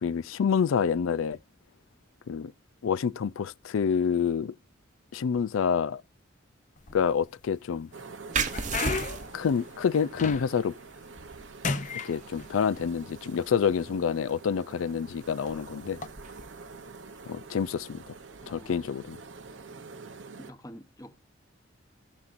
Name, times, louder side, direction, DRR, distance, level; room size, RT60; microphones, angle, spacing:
voice 1, 0.0-1.4 2.3-2.5 2.8-4.5 5.1-6.0 6.9-7.9 9.3-10.7 12.0-16.0 17.3-18.1 18.5-19.2, left 6 dB, 90° left, 0.4 m, -27 dB
sound 1, 6.8-7.5 8.0-10.7 11.1-11.4 11.6-12.9 13.7-13.8 14.5-14.7 15.9-16.1, left 4 dB, 40° left, 0.7 m, -34 dB
sound 2, 7.9-20.5, right 4 dB, 70° right, 0.8 m, -47 dB
sound 3, 8.3-19.6, right 4 dB, 40° right, 0.9 m, -39 dB
voice 2, 18.4-18.9 20.4-21.3, equal, 15° left, 0.9 m, -48 dB
17.5 x 6.0 x 2.6 m
head